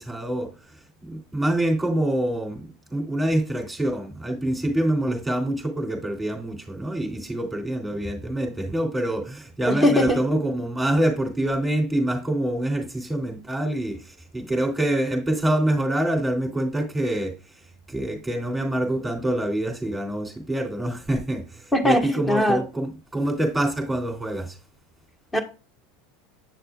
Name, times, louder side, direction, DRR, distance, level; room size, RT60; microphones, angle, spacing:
voice 1, 0.0-24.6, right 1 dB, 5° right, 3.2 m, -26 dB
voice 2, 9.7-10.2 21.7-22.0 22.3-22.6 25.3-25.4, left 1 dB, 10° left, 1.7 m, -19 dB
8.6 x 6.6 x 2.5 m
hypercardioid pair, 90°, 0 cm